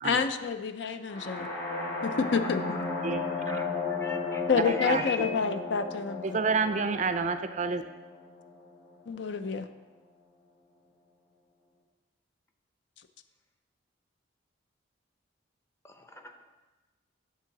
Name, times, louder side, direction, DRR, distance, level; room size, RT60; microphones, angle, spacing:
voice 1, 0.0-1.5 2.0-2.8 4.5-6.2 9.1-9.6, left 5 dB, 65° left, 9 dB, 0.5 m, -28 dB
sound 1, 1.1-8.9, left 3 dB, 50° left, 1.8 m, -35 dB
voice 2, 4.0-5.2 15.8-16.2, left 3 dB, 15° left, 5 dB, 0.6 m, -39 dB
voice 3, 4.7-5.3 6.2-7.8, right 4 dB, 40° right, 9 dB, 0.4 m, -29 dB
10.5 x 3.8 x 6.0 m, 1.1 s
head